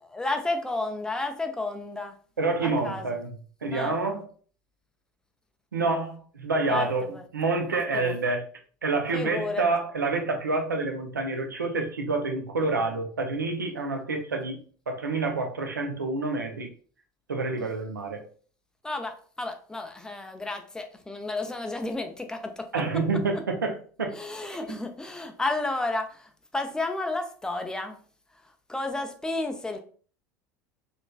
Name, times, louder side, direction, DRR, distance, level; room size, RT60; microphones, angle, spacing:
voice 1, 0.1-2.2 2.6-3.1 3.7-4.0 6.7-7.3 7.7-8.1 9.1-9.7 17.6-17.7 18.8-23.0 24.1-28.0 28.7-29.8, left 2 dB, 5° left, 5 dB, 0.4 m, -32 dB
voice 2, 2.4-3.3 3.6-4.3 5.7-8.5 8.8-14.6 14.9-16.7 17.3-18.2 22.7-24.1, right 3 dB, 85° right, 4 dB, 0.5 m, -28 dB
2.9 x 2.5 x 2.2 m, 0.43 s
figure-of-eight pair, 75°, 10 cm